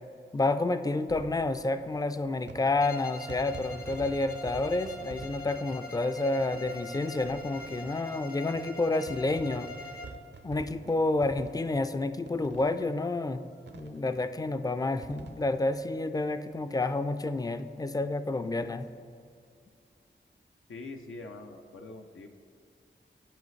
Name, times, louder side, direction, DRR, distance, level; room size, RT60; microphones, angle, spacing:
voice 1, 0.3-9.7 10.4-13.4 13.7-18.9, left 2 dB, 20° left, 11 dB, 0.4 m, -29 dB
sound 1, 1.0-17.0 17.3-17.4 17.6-17.7 19.0-19.2, right 4 dB, 60° right, 0.5 m, -49 dB
Bowed string instrument, 2.8-10.3, left 2 dB, 50° left, 0.7 m, -43 dB
voice 2, 20.7-22.3, left 3 dB, 85° left, 4 dB, 0.5 m, -43 dB
12.0 x 4.9 x 3.2 m, 2.2 s
wide cardioid pair, 50°, 20 cm